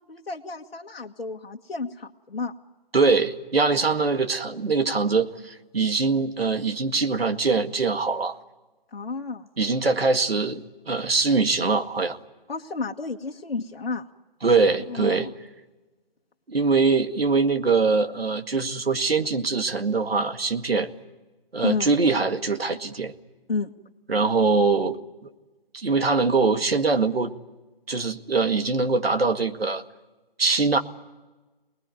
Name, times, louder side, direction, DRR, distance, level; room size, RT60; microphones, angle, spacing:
voice 1, 0.0-2.5 8.9-9.5 12.5-14.1 14.9-15.3 21.6-21.9 23.5-23.7, left 4 dB, 75° left, -1 dB, 1.7 m, -31 dB
voice 2, 2.9-8.4 9.6-12.2 14.4-15.3 16.5-20.9 21.5-23.1 24.1-25.0 25.7-27.3 27.9-29.8 30.4-30.8, right 4 dB, 90° right, 7 dB, 2.0 m, -23 dB
25.5 x 20.0 x 9.4 m, 1.2 s
figure-of-eight pair, 160°, 29 cm